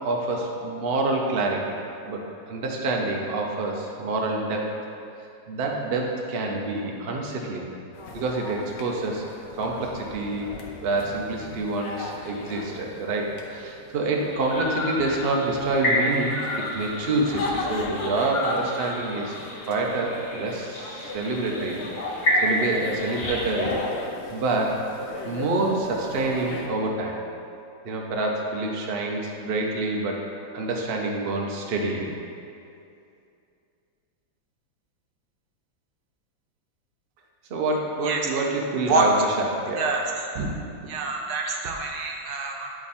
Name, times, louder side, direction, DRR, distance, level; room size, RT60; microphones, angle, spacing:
voice 1, 0.0-1.8 2.0-4.7 5.5-7.6 8.1-9.2 9.6-19.3 19.7-21.8 22.4-23.8 24.3-24.8 25.2-27.2 27.8-30.2 30.5-32.1 37.5-39.9, right 2 dB, 90° right, 0 dB, 0.5 m, -27 dB
sound 1, 7.9-26.7, left 2 dB, 65° left, 0.6 m, -36 dB
sound 2, 14.3-23.8, left 1 dB, 45° left, 1.7 m, -30 dB
voice 2, 39.8-40.5 40.8-42.7, right 3 dB, 65° right, 0 dB, 1.1 m, -27 dB
10.0 x 3.6 x 4.2 m, 2.6 s
omnidirectional pair, 2.1 m